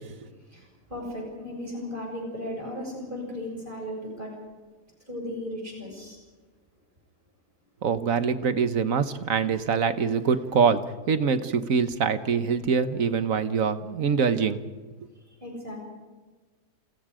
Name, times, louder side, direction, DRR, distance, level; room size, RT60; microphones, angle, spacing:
voice 1, 0.5-4.3 5.1-6.2 15.4-15.8, left 1 dB, 30° right, -1 dB, 7.2 m, -36 dB
voice 2, 7.8-10.8 11.1-14.6, right 6 dB, 55° right, 11 dB, 1.5 m, -24 dB
28.5 x 28.0 x 5.0 m, 1.3 s
omnidirectional pair, 1.8 m